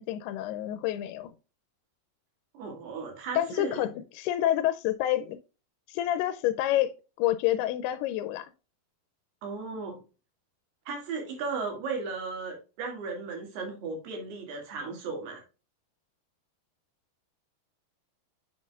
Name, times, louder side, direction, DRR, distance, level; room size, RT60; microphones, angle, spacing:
voice 1, 0.0-1.3 3.4-5.4 5.9-6.9 7.2-8.5, left 13 dB, 85° left, 2.6 m, -28 dB
voice 2, 2.5-3.9 9.4-10.0 10.9-15.4, right 4 dB, 80° right, 4.3 m, -36 dB
9.2 x 5.9 x 2.4 m
omnidirectional pair, 4.5 m